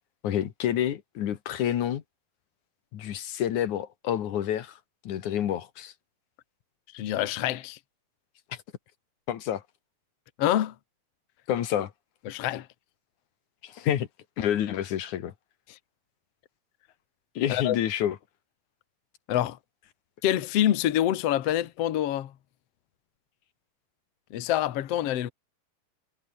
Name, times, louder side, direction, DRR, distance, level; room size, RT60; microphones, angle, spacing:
voice 1, 0.2-2.0 2.9-4.8 5.0-5.9 9.3-9.6 11.5-11.9 13.6-14.1 14.4-15.3 17.4-18.2, left 10 dB, 55° left, 2.5 m, -28 dB
voice 2, 6.9-7.8 10.4-10.7 12.2-12.7 17.5-17.8 19.3-19.6 20.2-22.3 24.3-25.3, left 12 dB, 80° left, 1.4 m, -26 dB
omnidirectional pair, 4.8 m